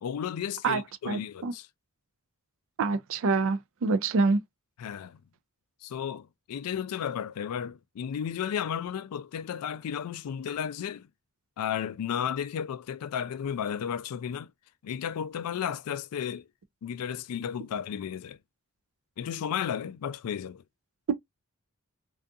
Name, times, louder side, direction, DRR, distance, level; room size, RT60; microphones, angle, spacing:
voice 1, 0.0-1.7 4.8-5.2 5.8-11.1 11.6-14.5 14.8-16.4 16.8-18.4 19.2-20.6, left 8 dB, 80° left, 0.3 m, -33 dB
voice 2, 0.6-1.5 2.8-4.4, right 4 dB, 65° right, 0.4 m, -26 dB
2.6 x 2.4 x 2.3 m
head